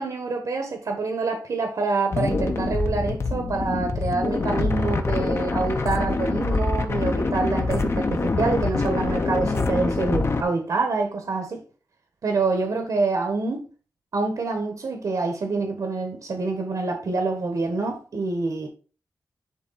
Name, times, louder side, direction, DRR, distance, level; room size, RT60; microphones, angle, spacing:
voice 1, 0.0-11.6 12.2-13.6 14.1-18.7, right 3 dB, 70° right, 1.2 m, -26 dB
sound 1, 2.1-10.4, left 3 dB, 40° left, 0.8 m, -25 dB
10.5 x 3.6 x 4.1 m
wide cardioid pair, 155°, 7 cm